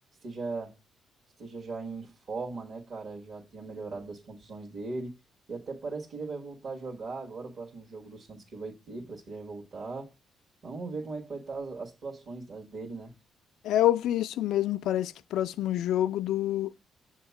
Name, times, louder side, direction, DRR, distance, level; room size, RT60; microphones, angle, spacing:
voice 1, 0.2-0.7 1.4-5.1 5.5-10.1 10.6-13.1, right 3 dB, 55° right, 1.5 m, -39 dB
voice 2, 13.6-16.7, left 13 dB, 85° left, 0.4 m, -27 dB
7.3 x 2.8 x 5.7 m
cardioid pair, 90°, 0 cm